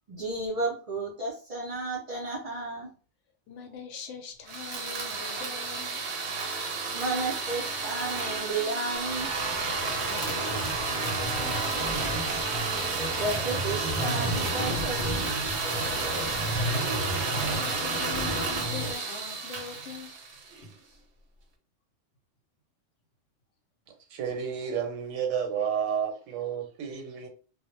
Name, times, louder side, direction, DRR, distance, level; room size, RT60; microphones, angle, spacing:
voice 1, 0.1-2.9 6.9-9.3 13.2-15.3 16.1-16.3, right 2 dB, 45° right, 0.5 m, -32 dB
voice 2, 3.5-6.0 10.0-12.2 17.4-20.1 20.6-20.8, left 5 dB, 75° left, 0.9 m, -42 dB
sound 1, 4.5-20.7, right 4 dB, 70° right, 0.8 m, -31 dB
sound 2, 9.0-18.9, equal, 40° left, 0.5 m, -34 dB
voice 3, 24.1-27.3, right 7 dB, 85° right, 1.0 m, -31 dB
2.1 x 2.0 x 3.0 m
omnidirectional pair, 1.3 m